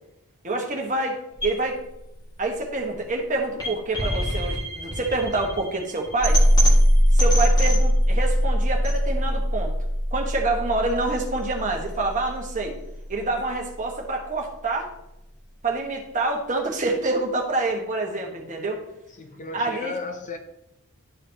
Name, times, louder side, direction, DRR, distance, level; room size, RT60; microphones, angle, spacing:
voice 1, 0.4-1.8 2.4-6.4 7.1-9.7 10.1-12.7 13.1-14.9 15.6-18.8 19.5-19.9, right 2 dB, 35° right, 1.2 m, -27 dB
sound 1, 1.4-13.4, equal, 20° left, 1.9 m, -22 dB
voice 2, 19.1-20.4, left 4 dB, 35° left, 0.6 m, -34 dB
11.0 x 5.0 x 2.8 m
head